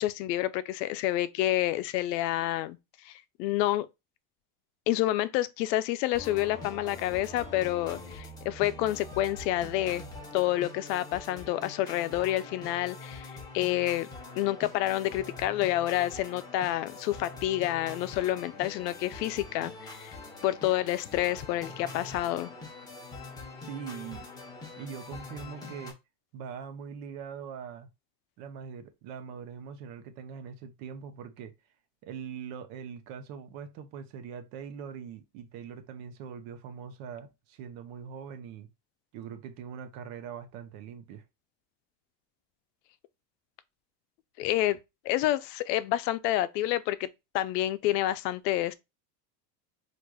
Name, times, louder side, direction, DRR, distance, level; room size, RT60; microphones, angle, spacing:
voice 1, 0.0-2.8 3.0-3.9 4.9-10.0 10.3-14.1 14.4-20.1 20.4-22.5 44.4-44.8 45.0-47.1 47.3-48.7, left 14 dB, 85° left, 0.6 m, -29 dB
sound 1, 6.1-25.9, left 3 dB, 10° left, 0.7 m, -44 dB
voice 2, 23.6-24.3 24.8-25.9 26.3-27.9 28.4-31.5 32.0-38.7 39.1-41.2, right 7 dB, 55° right, 0.7 m, -42 dB
4.7 x 2.5 x 2.2 m
supercardioid pair, 140°, 49 cm